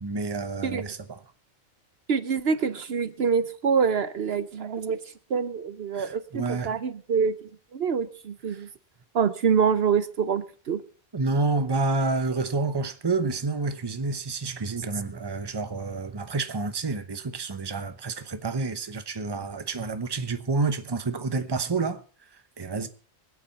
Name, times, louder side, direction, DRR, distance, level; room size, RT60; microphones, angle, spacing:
voice 1, 0.0-1.2 5.9-6.8 8.5-8.6 11.1-22.0 22.6-22.9, right 3 dB, 25° right, 0.9 m, -29 dB
voice 2, 2.1-5.0 5.3-7.3 7.7-8.7 9.1-10.8, right 6 dB, 65° right, 1.0 m, -25 dB
24.5 x 8.6 x 4.1 m
omnidirectional pair, 1.2 m